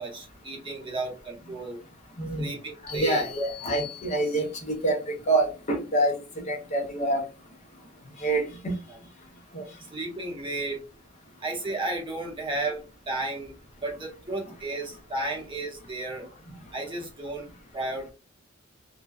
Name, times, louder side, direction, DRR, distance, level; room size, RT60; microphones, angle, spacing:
voice 1, 0.0-1.8 2.4-3.2 4.4-4.5 8.9-9.0 9.9-10.8 11.4-13.5 13.8-16.3 16.7-18.1, right 2 dB, 25° right, -1 dB, 0.8 m, -33 dB
voice 2, 2.2-2.5 2.8-6.2 6.5-7.2 8.2-8.8 9.5-9.6, right 2 dB, 35° left, 2 dB, 0.6 m, -26 dB
sound 1, 2.9-4.7, left 10 dB, 55° left, 0.9 m, -43 dB
2.6 x 2.1 x 2.3 m, 0.32 s
head